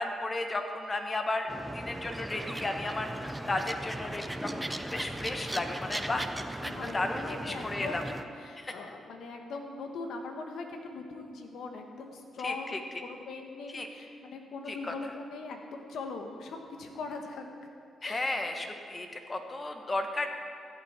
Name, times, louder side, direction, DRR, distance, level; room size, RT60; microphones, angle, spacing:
voice 1, 0.0-1.5 1.7-3.1 3.5-6.3 6.9-8.0 8.6-8.7 12.4-12.8 13.7-13.9 14.7-14.9 18.0-20.3, left 2 dB, 35° left, 5 dB, 1.4 m, -34 dB
sound 1, 1.5-8.2, right 1 dB, 10° right, 0.7 m, -38 dB
voice 2, 6.6-17.7 18.0-18.3, left 3 dB, 75° left, 4 dB, 1.3 m, -41 dB
14.5 x 8.4 x 4.4 m, 2.4 s
supercardioid pair, 55°, 0 cm